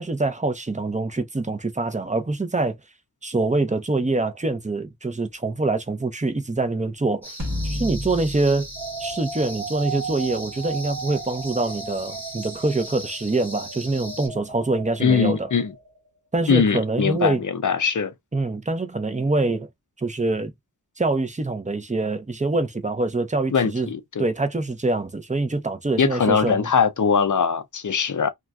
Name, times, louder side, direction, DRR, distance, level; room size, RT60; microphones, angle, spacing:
voice 1, 0.0-2.8 3.2-7.3 7.6-8.7 9.0-15.5 16.3-17.4 18.3-19.7 20.0-20.5 21.0-23.9 24.2-26.7, right 2 dB, 20° right, 0.6 m, -25 dB
sound 1, 7.2-14.3, equal, 5° left, 1.3 m, -39 dB
sound 2, 7.4-9.9, left 1 dB, 50° right, 1.2 m, -32 dB
sound 3, 8.8-16.1, right 4 dB, 70° right, 0.6 m, -36 dB
voice 2, 15.0-15.7 16.5-18.1 23.5-24.3 26.0-28.3, left 6 dB, 50° left, 0.5 m, -21 dB
2.4 x 2.2 x 2.3 m
wide cardioid pair, 40°, 39 cm